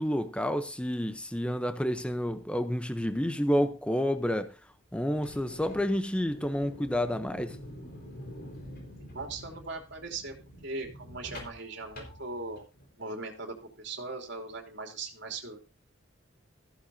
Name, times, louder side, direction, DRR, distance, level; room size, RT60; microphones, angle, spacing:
voice 1, 0.0-4.5 4.9-7.6, equal, 5° left, 0.7 m, -29 dB
sound 1, 5.1-12.9, equal, 50° left, 4.6 m, -47 dB
voice 2, 9.0-10.3 10.6-12.6 13.0-15.6, right 3 dB, 60° right, 2.9 m, -39 dB
15.0 x 14.5 x 2.7 m
head